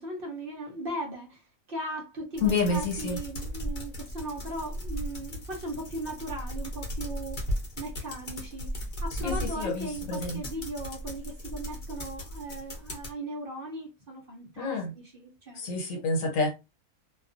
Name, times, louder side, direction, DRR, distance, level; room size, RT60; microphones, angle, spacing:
voice 1, 0.0-15.7, right 1 dB, 55° right, 0.7 m, -38 dB
voice 2, 2.4-3.2 9.2-10.4 14.6-14.9 15.5-16.5, left 3 dB, 75° left, 1.2 m, -28 dB
sound 1, 2.4-13.1, equal, 45° left, 0.8 m, -36 dB
2.4 x 2.2 x 2.5 m
omnidirectional pair, 1.4 m